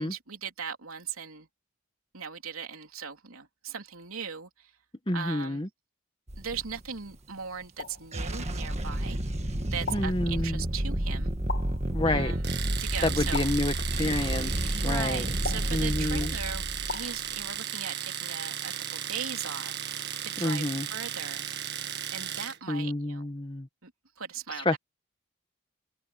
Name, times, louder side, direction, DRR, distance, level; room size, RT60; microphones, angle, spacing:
voice 1, 0.0-1.5 2.1-4.7 5.1-5.6 6.4-9.5 9.7-11.3 12.1-12.5 12.8-13.5 14.7-21.5 22.1-23.3 23.8-23.9 24.2-24.8, right 6 dB, 80° right, 3.3 m, -39 dB
voice 2, 5.1-5.7 9.9-10.6 11.9-12.4 13.0-14.5 14.8-15.3 15.7-16.3 20.4-20.9 22.7-23.7 24.7-24.8, left 1 dB, 25° left, 1.7 m, -29 dB
sound 1, 6.3-7.0 8.0-17.3, right 1 dB, 30° right, 1.6 m, -31 dB
sound 2, 7.8-8.1 9.9-10.2 11.5-11.9 13.3-13.8 15.4-15.8 16.9-17.2, left 4 dB, 55° left, 2.9 m, -37 dB
Domestic sounds home sounds, 12.4-22.6, right 10 dB, 50° right, 1.8 m, -35 dB
head